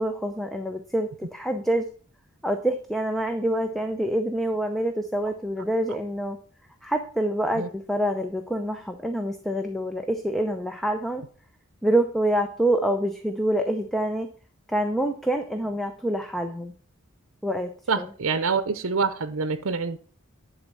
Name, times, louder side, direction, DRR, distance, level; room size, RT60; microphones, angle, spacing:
voice 1, 0.0-1.8 2.4-6.4 6.8-11.2 11.8-14.3 14.7-16.7 17.4-17.7 18.0-18.1, right 1 dB, ahead, 0.6 m, -26 dB
voice 2, 17.9-20.0, right 5 dB, 70° right, 0.7 m, -26 dB
10.5 x 4.2 x 6.8 m
head